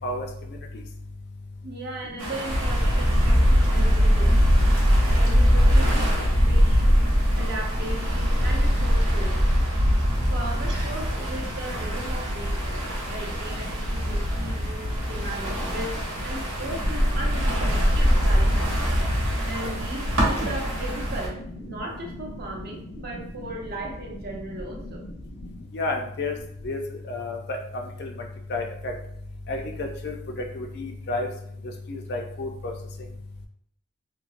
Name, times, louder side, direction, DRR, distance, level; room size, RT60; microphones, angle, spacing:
voice 1, 1.6-4.4 5.2-9.5 10.3-18.7 19.4-25.1, right 2 dB, 50° right, -1 dB, 0.6 m, -37 dB
sound 1, 2.2-21.3, equal, 80° right, 0.9 m, -22 dB
voice 2, 25.7-26.3 26.6-26.8 27.1-28.1 28.5-28.9 29.5-30.1 30.5-31.3 31.9-32.7, left 2 dB, 55° left, 2 dB, 0.4 m, -30 dB
3.1 x 2.1 x 2.5 m, 0.69 s
head